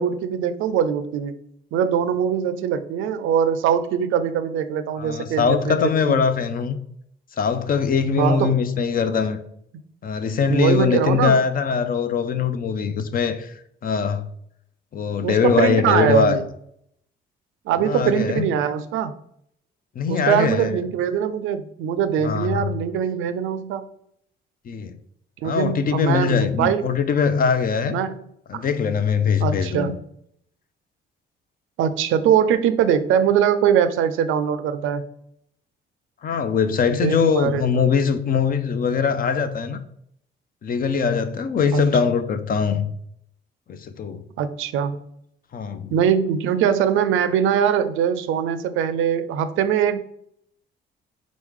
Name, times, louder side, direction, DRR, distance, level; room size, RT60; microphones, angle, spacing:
voice 1, 0.0-1.3 1.7-6.2 8.2-8.5 10.5-11.4 15.2-16.4 17.7-19.1 20.1-23.8 25.4-26.8 27.9-28.2 28.5-28.6 29.4-29.9 31.8-35.1 36.9-37.8 41.7-41.8 44.4-45.0 45.9-50.0, right 8 dB, 85° right, 0.4 m, -22 dB
voice 2, 5.0-6.8 7.4-9.4 10.0-13.5 13.8-14.3 14.9-16.4 17.8-18.5 20.0-20.8 22.2-22.7 24.7-24.9 25.4-28.0 28.5-30.0 36.2-39.8 40.6-42.9 43.7-44.2 45.5-45.9, left 6 dB, 45° left, 0.5 m, -22 dB
4.0 x 3.1 x 3.5 m
cardioid pair, 90°, 20 cm